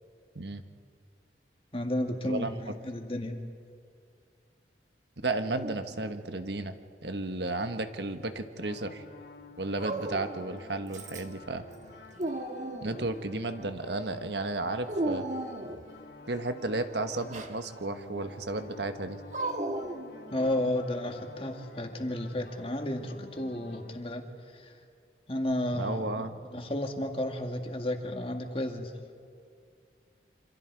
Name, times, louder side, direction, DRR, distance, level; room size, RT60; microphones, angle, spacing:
voice 1, 1.7-3.4 20.3-24.3 24.5-24.8 25.3-26.3 26.5-28.9, left 1 dB, 30° left, 4 dB, 1.9 m, -32 dB
voice 2, 2.2-2.8 5.2-6.8 7.0-9.0 9.6-11.7 12.8-15.2 16.3-19.2 25.7-26.3, right 2 dB, 70° right, 8 dB, 1.4 m, -33 dB
Dog, 5.6-6.4 7.5-8.3 9.8-10.5 10.9-11.4 11.8-13.1 14.9-15.9 17.1-17.6 19.3-20.6, right 2 dB, 40° right, 1.5 m, -36 dB
sound 1, 8.6-24.0, left 2 dB, 65° left, 1.9 m, -51 dB
27.5 x 26.0 x 4.7 m, 2.3 s
head